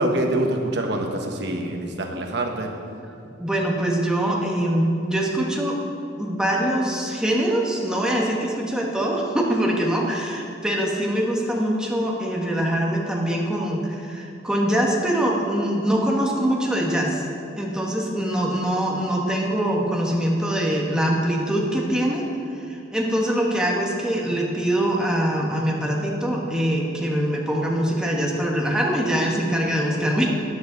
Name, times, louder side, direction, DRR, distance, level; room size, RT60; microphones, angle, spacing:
voice 1, 0.0-2.7, right 1 dB, 65° right, 2 dB, 1.2 m, -25 dB
voice 2, 3.4-5.8 6.2-17.2 17.5-22.2 22.7-30.3, right 1 dB, 5° right, -2 dB, 1.4 m, -23 dB
12.5 x 10.0 x 4.0 m, 2.6 s
head